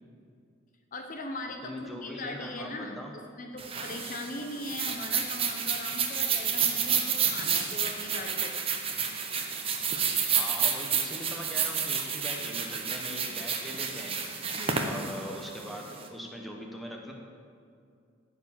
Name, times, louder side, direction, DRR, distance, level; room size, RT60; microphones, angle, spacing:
voice 1, 0.9-8.6 14.5-15.1, left 1 dB, 40° left, 4 dB, 0.7 m, -40 dB
voice 2, 1.6-3.1 10.3-14.2 14.8-17.1, equal, ahead, 0 dB, 1.1 m, -41 dB
sound 1, 3.6-16.0, right 6 dB, 30° right, 0.9 m, -30 dB
14.0 x 4.8 x 7.4 m, 2.4 s
head